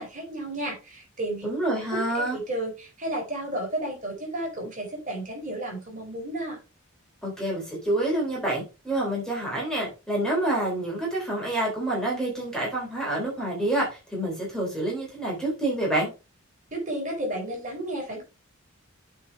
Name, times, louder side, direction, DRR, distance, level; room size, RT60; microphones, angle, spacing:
voice 1, 0.0-1.5 1.9-6.6 16.7-18.2, right 1 dB, 40° right, -1 dB, 4.3 m, -32 dB
voice 2, 1.4-2.4 7.2-16.1, right 1 dB, 5° left, -3 dB, 3.7 m, -27 dB
8.3 x 4.7 x 4.6 m, 0.29 s
head